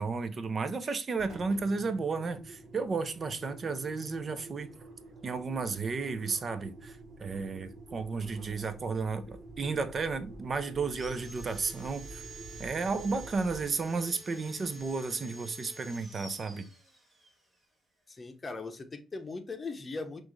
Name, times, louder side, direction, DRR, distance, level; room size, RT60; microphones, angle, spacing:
voice 1, 0.0-4.7 5.2-12.2 12.6-16.7, right 4 dB, 40° right, 0.6 m, -33 dB
Engine, 1.1-15.1, right 2 dB, 60° right, 1.4 m, -49 dB
Sawing, 10.8-17.3, right 2 dB, 20° right, 2.4 m, -49 dB
voice 2, 18.1-20.2, left 3 dB, 30° left, 0.8 m, -39 dB
6.0 x 2.5 x 3.1 m
cardioid pair, 90°, 0 cm